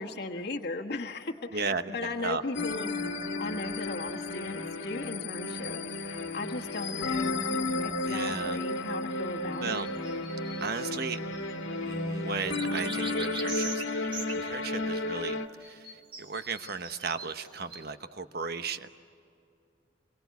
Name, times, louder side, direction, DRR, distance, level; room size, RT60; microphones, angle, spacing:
voice 1, 0.0-3.0 3.4-9.8, left 3 dB, 60° left, 1 dB, 1.4 m, -37 dB
voice 2, 1.5-2.4 8.1-8.6 9.6-9.9 10.6-11.2 11.8-13.8 14.3-18.9, right 4 dB, 55° right, 9 dB, 1.1 m, -35 dB
sound 1, 2.5-15.5, left 2 dB, 90° left, 1.7 m, -33 dB
sound 2, 7.1-7.8 9.5-11.8 12.5-14.8 15.6-17.9, right 3 dB, 30° right, 2.6 m, -43 dB
28.5 x 23.0 x 8.3 m, 2.5 s
head